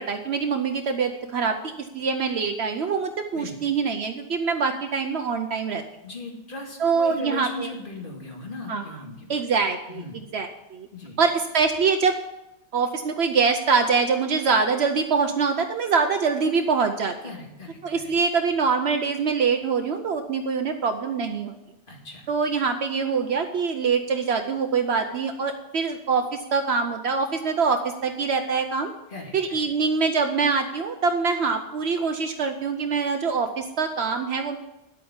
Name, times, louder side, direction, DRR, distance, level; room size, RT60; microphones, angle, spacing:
voice 1, 0.0-5.8 6.8-7.7 8.7-9.0 9.3-10.0 10.3-10.9 11.2-12.2 12.7-17.1 17.8-21.6 22.3-28.9 29.3-34.6, right 5 dB, 70° right, 5 dB, 1.0 m, -24 dB
voice 2, 6.0-9.4 9.9-10.2 10.9-11.2 17.2-18.1 21.9-22.3 29.1-29.6, left 2 dB, 50° left, 0 dB, 2.4 m, -37 dB
10.0 x 8.5 x 7.1 m, 0.94 s
omnidirectional pair, 1.1 m